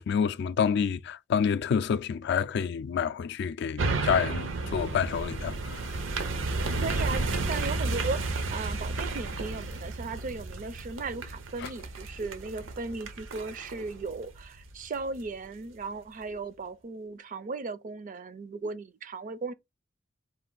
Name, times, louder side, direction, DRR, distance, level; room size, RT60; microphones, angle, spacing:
voice 1, 0.0-6.0 11.6-11.7, left 7 dB, 60° left, 0.3 m, -28 dB
sound 1, 3.8-15.2 15.7-15.8, right 3 dB, 80° right, 0.7 m, -32 dB
voice 2, 6.7-19.5, right 3 dB, 45° right, 0.4 m, -36 dB
4.4 x 2.5 x 3.8 m
head